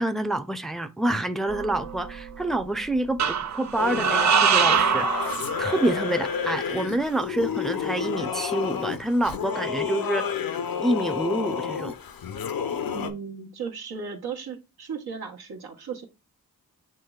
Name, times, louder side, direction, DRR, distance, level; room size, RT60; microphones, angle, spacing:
voice 1, 0.0-10.3 10.8-12.0, right 1 dB, ahead, 0.5 m, -27 dB
sound 1, 1.5-2.3 3.2-6.1, right 7 dB, 50° right, 0.5 m, -24 dB
Singing / Musical instrument, 3.8-13.1, left 7 dB, 70° left, 0.6 m, -30 dB
voice 2, 12.8-16.1, right 6 dB, 90° right, 1.0 m, -36 dB
7.4 x 3.0 x 2.3 m
cardioid pair, 50°, 37 cm